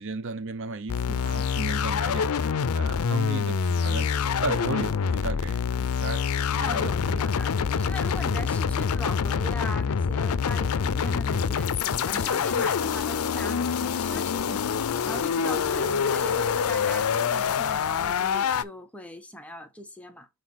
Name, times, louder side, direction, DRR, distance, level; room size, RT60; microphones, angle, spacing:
voice 1, 0.0-4.1 4.4-6.3 6.5-6.9 15.5-15.6, right 3 dB, 60° right, 0.7 m, -35 dB
sound 1, 0.9-18.6, left 6 dB, 75° left, 0.5 m, -26 dB
voice 2, 6.6-20.3, equal, 5° left, 1.0 m, -39 dB
6.3 x 4.1 x 4.1 m
head